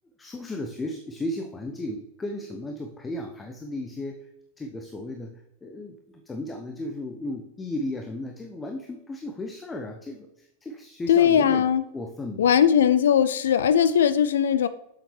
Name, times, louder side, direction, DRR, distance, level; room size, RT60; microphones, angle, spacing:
voice 1, 0.2-4.3 4.6-11.7 11.9-12.6, left 1 dB, 15° left, 3 dB, 0.7 m, -35 dB
voice 2, 11.1-11.8 12.4-14.7, left 8 dB, 65° left, 13 dB, 0.3 m, -19 dB
7.5 x 7.2 x 3.2 m, 0.88 s
figure-of-eight pair, 90°, 0 cm